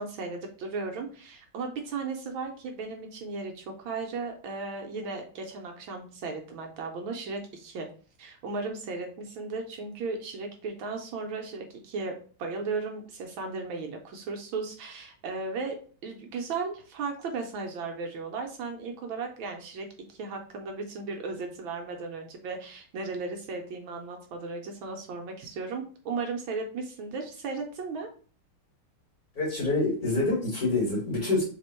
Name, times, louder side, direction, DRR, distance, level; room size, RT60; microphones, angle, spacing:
voice 1, 0.0-7.9 8.2-12.1 12.4-15.8 16.0-28.1, right 4 dB, 75° right, 3 dB, 1.4 m, -36 dB
voice 2, 29.4-31.4, left 2 dB, 45° left, -4 dB, 2.1 m, -26 dB
3.7 x 3.4 x 4.3 m, 0.41 s
omnidirectional pair, 2.3 m